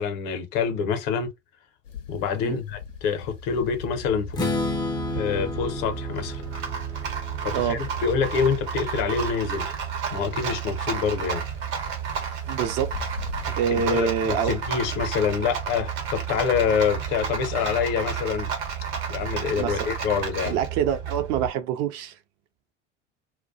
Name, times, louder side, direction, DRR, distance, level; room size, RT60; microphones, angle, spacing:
voice 1, 0.0-1.3 2.1-4.4 5.1-6.4 7.4-9.7 10.1-11.4 13.5-18.5 19.1-20.6, left 6 dB, 55° left, 0.7 m, -26 dB
sound 1, 1.8-13.5, left 8 dB, 90° left, 0.6 m, -43 dB
Rattle, 2.9-21.5, right 7 dB, 70° right, 0.9 m, -32 dB
Strum, 4.3-8.3, left 3 dB, 10° left, 0.4 m, -32 dB
voice 2, 12.5-12.9 13.6-14.6 19.5-19.9 20.4-22.2, right 8 dB, 45° right, 0.5 m, -26 dB
2.2 x 2.1 x 2.5 m
figure-of-eight pair, 70°, 36 cm